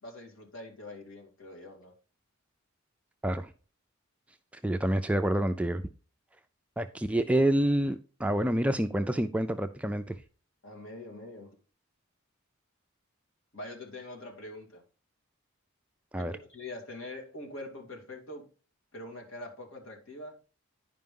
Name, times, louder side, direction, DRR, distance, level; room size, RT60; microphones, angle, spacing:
voice 1, 0.0-1.9 7.1-7.2 10.6-11.6 13.5-14.8 16.2-18.5 18.9-20.3, left 1 dB, 65° left, 1 dB, 2.4 m, -44 dB
voice 2, 4.6-5.8 6.8-10.1 16.1-16.4, right 1 dB, 5° right, 8 dB, 0.3 m, -27 dB
10.5 x 5.1 x 3.7 m, 0.37 s
head